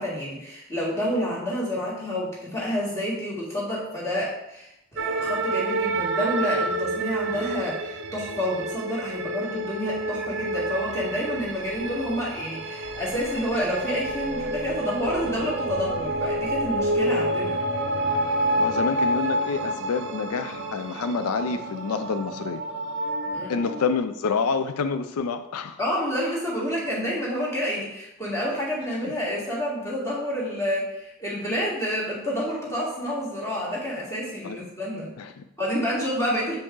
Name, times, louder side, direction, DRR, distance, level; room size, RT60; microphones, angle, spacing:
voice 1, 0.0-17.6 23.3-23.6 25.8-35.1 35.6-36.6, equal, 15° left, -6 dB, 2.0 m, -29 dB
sound 1, 5.0-24.0, right 1 dB, 50° right, 0.6 m, -28 dB
voice 2, 18.6-22.6 23.5-25.8 28.9-29.1 34.4-34.7 35.2-35.4, left 5 dB, 85° left, 10 dB, 0.4 m, -28 dB
7.1 x 5.1 x 3.8 m, 0.86 s
head